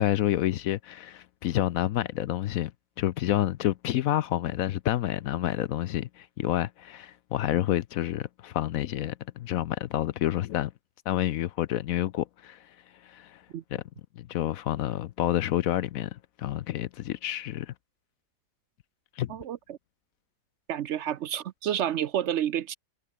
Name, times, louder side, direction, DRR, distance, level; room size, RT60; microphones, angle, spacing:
voice 1, 0.0-2.7 3.0-10.7 11.1-12.8 13.0-13.4 13.7-13.8 14.2-17.7 19.2-19.3, left 13 dB, 65° left, 0.9 m, -29 dB
voice 2, 19.3-19.8 20.7-22.8, right 10 dB, 65° right, 0.7 m, -30 dB
omnidirectional pair, 1.8 m